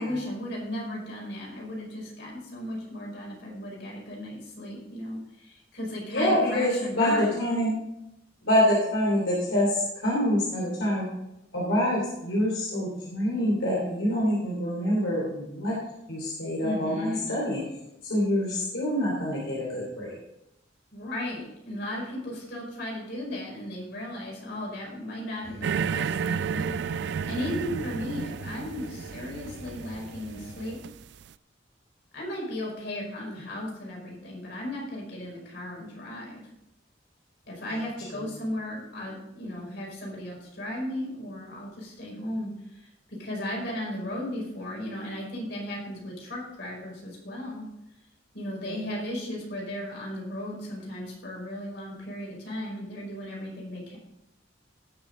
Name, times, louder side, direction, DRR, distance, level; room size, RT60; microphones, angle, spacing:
voice 1, 0.0-7.4 16.6-17.3 20.9-30.8 32.1-36.4 37.5-47.7 48.3-54.0, left 1 dB, 60° left, -2 dB, 5.1 m, -35 dB
voice 2, 6.1-7.7 8.4-11.0 11.5-15.7 16.1-17.6 18.0-20.1 37.7-37.8 38.1-38.3 48.6-48.8, equal, 80° left, -5 dB, 3.4 m, -26 dB
sound 1, 25.4-30.8, equal, 85° right, 3.3 m, -44 dB
sound 2, 25.6-31.2, right 6 dB, 60° right, 0.3 m, -32 dB
18.0 x 6.8 x 3.9 m, 0.87 s
head